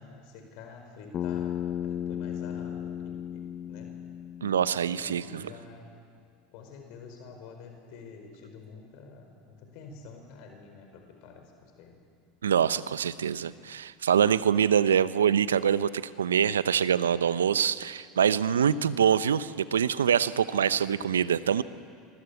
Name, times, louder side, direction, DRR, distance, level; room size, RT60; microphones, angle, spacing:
voice 1, 0.0-3.4 3.7-3.9 4.8-5.9 6.5-12.0 20.5-21.2, left 4 dB, 60° left, 4 dB, 4.8 m, -48 dB
Bass guitar, 1.1-5.4, left 10 dB, 40° left, 0.9 m, -35 dB
voice 2, 4.4-5.5 12.4-21.6, right 8 dB, 80° right, 16 dB, 0.8 m, -25 dB
26.5 x 21.0 x 8.3 m, 2.2 s
hypercardioid pair, 80°, 0 cm